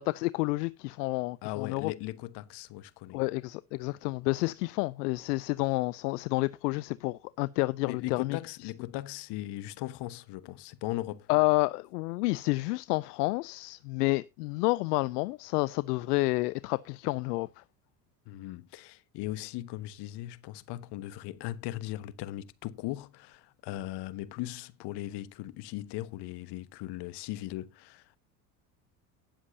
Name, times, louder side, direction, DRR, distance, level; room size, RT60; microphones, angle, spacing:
voice 1, 0.1-1.9 3.1-8.4 11.3-17.5, left 23 dB, 75° left, 0.6 m, -29 dB
voice 2, 1.4-3.2 7.9-11.3 18.3-28.2, left 16 dB, 55° left, 1.2 m, -38 dB
19.0 x 7.3 x 2.7 m
hypercardioid pair, 80°, 47 cm